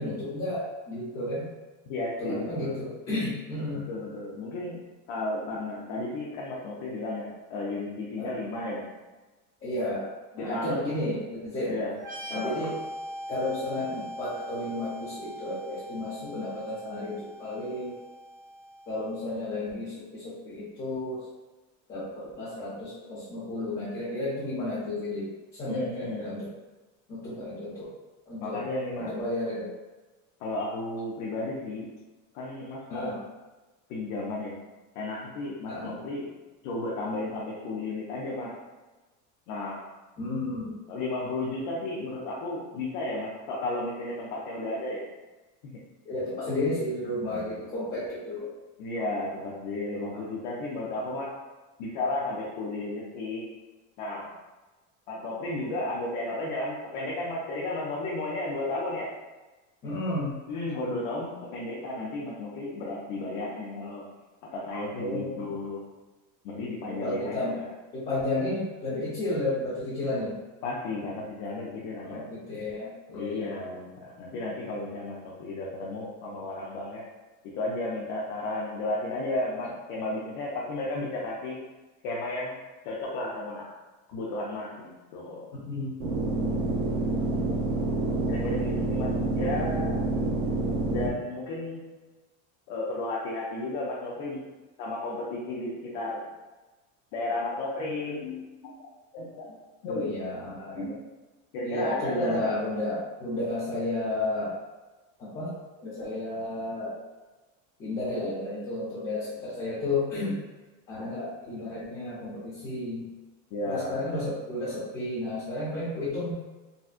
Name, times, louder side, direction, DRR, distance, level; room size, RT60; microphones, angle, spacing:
voice 1, 0.0-1.4 2.2-3.9 8.2-8.3 9.6-10.1 10.3-11.7 12.3-12.7 13.3-18.0 18.9-21.2 21.9-26.5 27.1-27.9 28.3-28.6 29.0-29.7 32.9-33.2 35.7-36.0 40.2-40.8 46.0-48.5 50.1-50.2 59.8-60.4 64.9-65.5 66.9-67.6 67.9-70.4 72.0-73.7 85.5-86.3 99.9-100.9 101.6-104.6 105.2-105.5 105.8-107.0 107.8-110.4 110.9-113.1 113.6-116.3, left 1 dB, 25° left, -11 dB, 0.9 m, -32 dB
voice 2, 1.9-2.8 3.7-8.9 10.4-10.8 11.7-11.9 12.3-12.6 25.7-26.2 28.4-29.1 30.4-31.9 32.3-33.2 33.9-34.5 34.9-36.3 36.6-38.6 39.5-39.8 40.9-45.0 45.6-45.7 48.8-51.3 51.8-53.4 54.0-54.3 55.1-59.1 60.5-64.0 64.5-65.8 66.4-67.7 70.6-72.2 73.1-77.0 77.5-81.6 82.0-82.6 82.8-83.6 84.1-85.5 88.3-90.0 90.9-91.8 92.7-94.4 94.8-96.3 97.1-98.9 99.1-99.5 99.8-100.1 100.8-100.9 101.5-102.5 113.5-114.0, left 2 dB, 55° left, -5 dB, 0.7 m, -33 dB
sound 1, 12.0-19.5, equal, 45° right, 1.4 m, -41 dB
sound 2, 86.0-91.1, right 2 dB, 60° right, 0.7 m, -27 dB
4.1 x 2.2 x 2.5 m, 1.2 s
cardioid pair, 160°, 36 cm